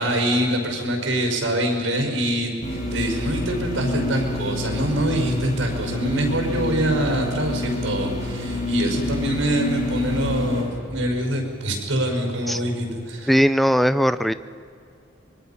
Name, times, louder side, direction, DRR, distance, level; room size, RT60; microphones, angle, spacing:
voice 1, 0.0-2.5 2.9-13.4, right 1 dB, 90° right, 3 dB, 5.6 m, -24 dB
sound 1, 2.6-10.6, left 2 dB, 40° left, 6.4 m, -28 dB
voice 2, 13.3-14.3, equal, ahead, 13 dB, 0.5 m, -18 dB
25.0 x 22.5 x 5.9 m, 2.4 s
head